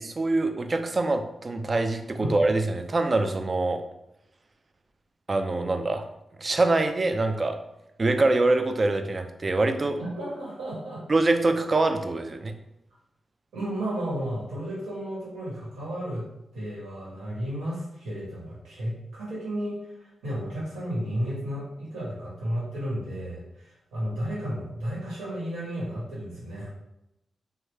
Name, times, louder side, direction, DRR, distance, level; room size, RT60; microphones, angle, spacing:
voice 1, 0.0-3.8 5.3-6.0 6.4-7.6 8.0-10.0 11.1-12.5, right 2 dB, 45° right, 7 dB, 0.4 m, -24 dB
voice 2, 10.0-11.0 13.5-16.2 16.5-26.7, equal, 90° right, -7 dB, 1.3 m, -33 dB
3.1 x 2.3 x 3.2 m, 0.87 s
supercardioid pair, 40°, 0 cm